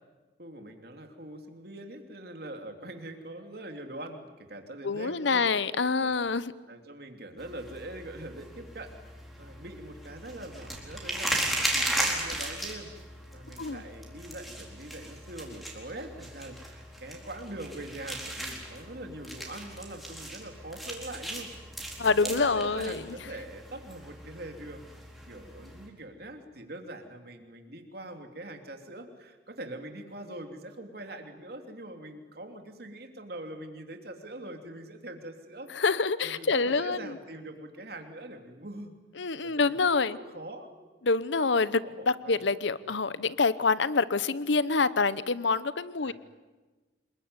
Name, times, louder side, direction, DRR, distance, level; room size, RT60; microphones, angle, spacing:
voice 1, 0.4-5.4 6.0-6.1 6.7-9.0 9.4-12.9 13.3-21.5 22.0-24.8 25.3-35.7 36.2-38.9 39.4-40.7 41.8-42.5 46.0-46.1, right 1 dB, 55° right, 5 dB, 3.0 m, -43 dB
voice 2, 4.8-6.5 13.6-13.8 22.0-23.0 35.7-37.1 39.2-40.2 41.0-46.1, left 4 dB, 75° left, 17 dB, 0.9 m, -26 dB
sound 1, 7.4-25.9, right 1 dB, ahead, 4.3 m, -37 dB
27.0 x 22.0 x 9.7 m, 1.3 s
head